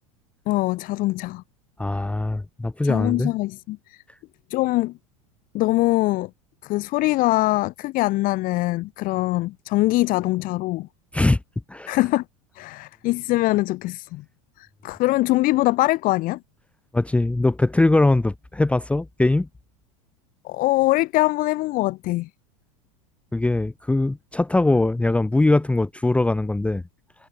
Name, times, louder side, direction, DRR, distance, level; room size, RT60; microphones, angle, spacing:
voice 1, 0.5-1.4 2.8-4.0 4.5-5.0 5.5-6.3 6.6-10.9 11.9-12.2 12.5-14.2 14.6-16.4 20.4-22.3, left 19 dB, 50° left, 1.1 m, -23 dB
voice 2, 1.8-3.3 11.1-11.4 11.7-12.0 16.9-19.5 23.3-26.8, left 2 dB, 5° left, 0.7 m, -21 dB
hypercardioid pair, 90°, 18 cm